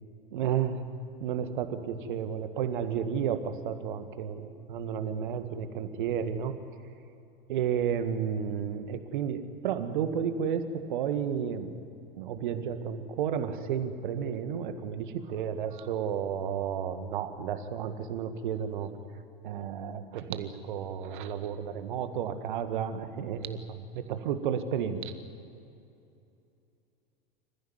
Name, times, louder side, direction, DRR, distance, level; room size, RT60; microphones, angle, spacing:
voice 1, 0.3-0.9 1.2-6.5 7.5-11.7 12.2-18.9 19.4-25.1, right 8 dB, 55° right, 9 dB, 1.8 m, -32 dB
27.0 x 15.0 x 9.5 m, 2.7 s
figure-of-eight pair, 85°, 29 cm